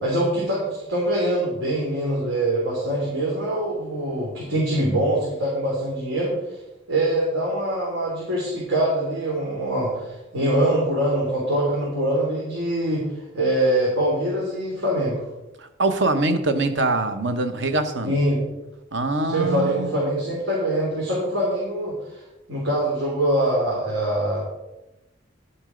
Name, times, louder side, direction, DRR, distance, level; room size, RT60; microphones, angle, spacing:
voice 1, 0.0-6.3 6.9-13.0 13.3-15.2 18.0-18.4 19.3-21.9 22.5-24.4, right 1 dB, 90° right, -5 dB, 3.3 m, -23 dB
voice 2, 15.6-18.2 18.9-19.9, right 2 dB, 65° right, 8 dB, 1.1 m, -23 dB
11.5 x 7.2 x 5.0 m, 0.94 s
head